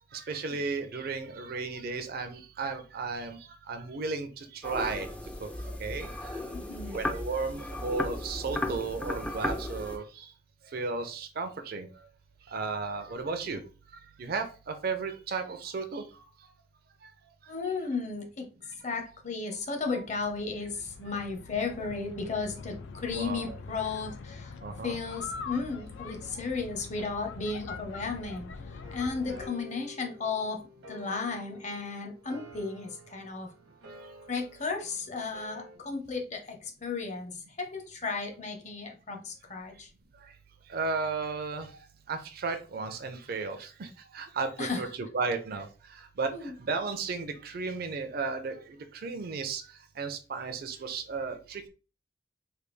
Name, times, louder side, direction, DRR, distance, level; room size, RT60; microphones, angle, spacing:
voice 1, 0.1-3.4 3.7-5.1 5.4-5.5 5.8-6.4 6.9-10.3 10.7-11.9 12.5-13.6 14.2-16.1 23.1-23.5 24.6-25.0 40.7-41.7 42.1-45.7 46.0-49.6 50.0-51.7, right 4 dB, 55° right, 0.4 m, -34 dB
sound 1, 4.6-10.0, left 1 dB, 5° left, 0.3 m, -35 dB
voice 2, 6.5-7.0 17.5-18.5 18.8-24.5 24.8-30.6 30.9-33.5 34.3-39.9 44.6-44.8 46.3-46.5, left 4 dB, 40° left, 0.7 m, -34 dB
sound 2, 19.8-29.5, left 5 dB, 85° left, 0.4 m, -44 dB
sound 3, 28.8-35.8, left 2 dB, 80° right, 0.9 m, -50 dB
3.3 x 2.2 x 3.1 m
head